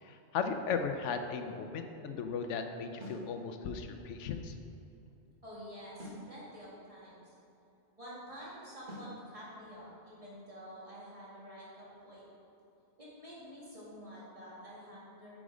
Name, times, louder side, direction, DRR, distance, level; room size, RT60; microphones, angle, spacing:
voice 1, 0.0-4.5, left 5 dB, 90° left, 7 dB, 1.0 m, -36 dB
sound 1, 3.0-3.3 6.0-6.3 8.9-9.2, left 1 dB, 45° right, 1.8 m, -45 dB
voice 2, 5.4-7.3 8.0-12.2 13.0-15.4, equal, 30° right, -8 dB, 2.2 m, -49 dB
9.0 x 5.1 x 5.0 m, 2.9 s
omnidirectional pair, 1.2 m